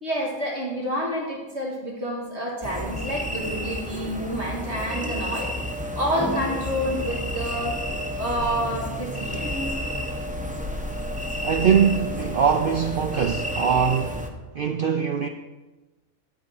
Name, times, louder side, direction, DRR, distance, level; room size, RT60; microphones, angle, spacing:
voice 1, 0.0-5.5 5.9-7.8 8.2-9.5, equal, 50° right, 2.0 m, -28 dB
sound 1, 2.6-14.3, equal, 5° right, 0.7 m, -31 dB
voice 2, 11.4-14.3 14.5-15.3, right 7 dB, 65° right, 0.5 m, -22 dB
12.5 x 4.5 x 7.7 m
omnidirectional pair, 1.6 m